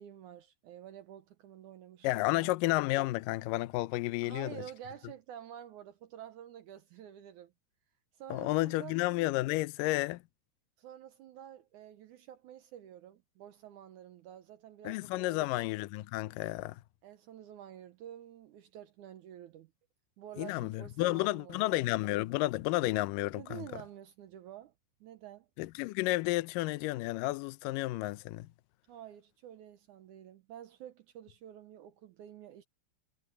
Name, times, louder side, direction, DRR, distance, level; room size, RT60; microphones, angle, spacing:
voice 1, 0.0-2.5 4.2-7.5 8.1-9.0 10.8-15.5 17.0-19.7 20.2-21.8 23.3-24.7 25.0-25.5 28.9-32.6, right 11 dB, 80° right, 1.8 m, -49 dB
voice 2, 2.0-4.6 8.3-10.2 14.8-16.8 20.4-23.6 25.6-28.5, left 19 dB, 80° left, 2.0 m, -31 dB
omnidirectional pair, 4.6 m